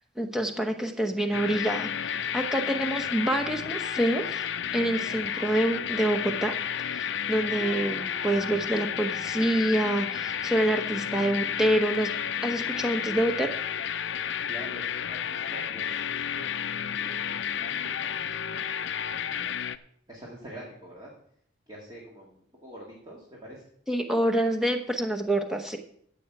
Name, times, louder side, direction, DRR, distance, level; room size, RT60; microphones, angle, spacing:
voice 1, 0.2-4.4 4.7-12.1 12.4-13.5 23.9-25.8, right 1 dB, 5° right, 3 dB, 1.0 m, -27 dB
sound 1, 1.3-19.8, left 8 dB, 70° left, 0.5 m, -32 dB
Harp, 7.6-9.4 9.7-10.1 10.7-10.8, left 2 dB, 20° left, 2.1 m, -49 dB
voice 2, 14.2-19.4 20.1-21.1 21.7-23.6, right 1 dB, 25° right, -4 dB, 2.2 m, -47 dB
14.0 x 7.7 x 4.8 m, 0.66 s
head